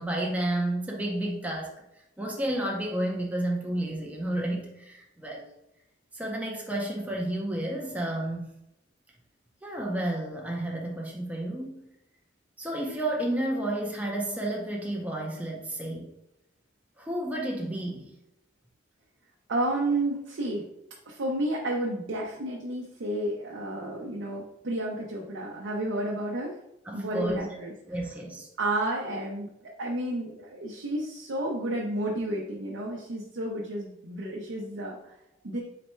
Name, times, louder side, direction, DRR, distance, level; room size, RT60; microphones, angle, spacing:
voice 1, 0.0-1.7 2.2-5.5 6.1-8.5 9.6-11.8 12.6-16.1 17.0-18.1 26.9-27.6 27.9-28.5, right 1 dB, 10° right, -2 dB, 0.5 m, -31 dB
voice 2, 19.5-20.6 21.1-26.5 26.9-27.7 28.6-29.5 29.8-35.1 35.4-35.6, right 1 dB, 75° right, -2 dB, 0.6 m, -31 dB
4.0 x 2.2 x 4.3 m, 0.85 s
head